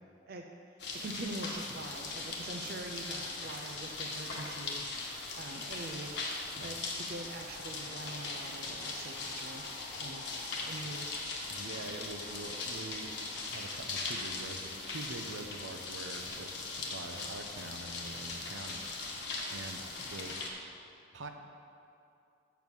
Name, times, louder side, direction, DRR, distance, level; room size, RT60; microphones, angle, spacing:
sound 1, 0.8-20.5, left 3 dB, 60° left, 1.2 m, -40 dB
voice 1, 1.0-5.0 5.3-6.2 6.6-10.3 10.6-11.2, right 2 dB, 50° right, 2 dB, 0.5 m, -44 dB
voice 2, 11.5-13.2 13.5-20.4 21.1-21.3, right 2 dB, 80° right, 5 dB, 0.8 m, -45 dB
7.2 x 7.1 x 6.2 m, 2.6 s
head